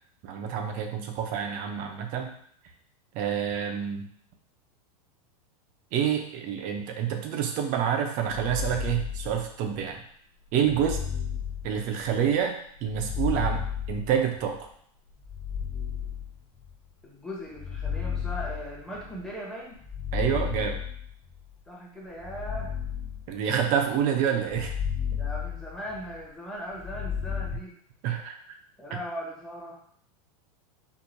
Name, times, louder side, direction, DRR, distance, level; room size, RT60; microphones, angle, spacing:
voice 1, 0.2-2.3 3.1-4.1 5.9-10.0 10.5-11.0 11.6-12.6 12.8-14.6 20.1-20.8 23.3-24.8 28.0-28.4, right 8 dB, 45° right, 4 dB, 0.7 m, -27 dB
sound 1, 8.3-9.8 10.6-12.3 12.8-14.6 15.2-16.7 17.4-19.2 19.7-21.4 22.1-23.8 24.4-26.2 26.7-27.6, left 7 dB, 90° left, 1.0 m, -33 dB
voice 2, 17.0-19.8 21.7-22.8 25.2-27.7 28.8-29.8, equal, 5° left, -4 dB, 1.0 m, -39 dB
4.6 x 2.7 x 2.6 m, 0.62 s
supercardioid pair, 135°, 19 cm